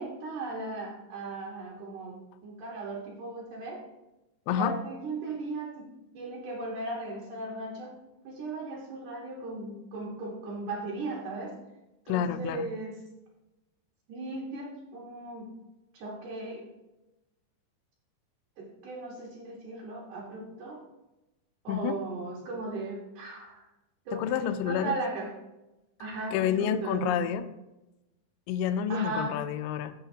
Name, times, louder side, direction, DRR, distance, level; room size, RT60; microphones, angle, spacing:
voice 1, 0.0-3.8 4.5-5.9 6.1-7.9 8.2-11.6 12.1-12.9 14.1-15.5 15.9-16.7 18.6-20.8 21.6-23.6 24.1-24.4 24.6-25.3 26.0-27.1 28.9-29.4, right 2 dB, 60° right, -3 dB, 2.9 m, -37 dB
voice 2, 12.1-12.7 21.7-22.0 24.1-24.9 26.3-27.5 28.5-29.9, left 9 dB, 90° left, 9 dB, 1.9 m, -29 dB
15.5 x 5.8 x 2.8 m, 0.98 s
omnidirectional pair, 4.6 m